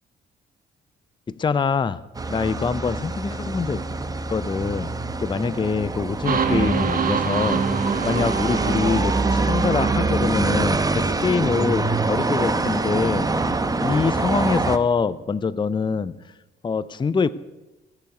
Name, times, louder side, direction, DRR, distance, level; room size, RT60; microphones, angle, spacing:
voice 1, 1.3-2.0 2.3-3.8 4.3-4.9 5.2-7.6 8.0-13.3 13.8-16.1 16.6-17.3, left 5 dB, 25° left, 16 dB, 0.5 m, -24 dB
sound 1, 2.1-14.8, right 3 dB, 20° right, 0.9 m, -25 dB
sound 2, 6.3-12.0, right 5 dB, 45° right, 1.7 m, -26 dB
16.0 x 7.0 x 9.5 m, 1.1 s
cardioid pair, 90°, 20 cm